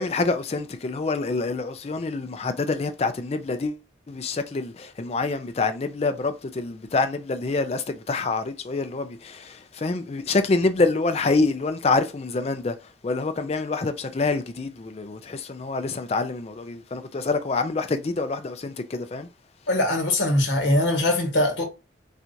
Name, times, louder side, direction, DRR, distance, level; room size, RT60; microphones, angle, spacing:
voice 1, 0.0-12.7 13.0-19.3, left 3 dB, 35° left, 0.4 m, -26 dB
voice 2, 19.7-21.6, left 1 dB, 70° left, 1.3 m, -22 dB
4.3 x 2.4 x 2.6 m
head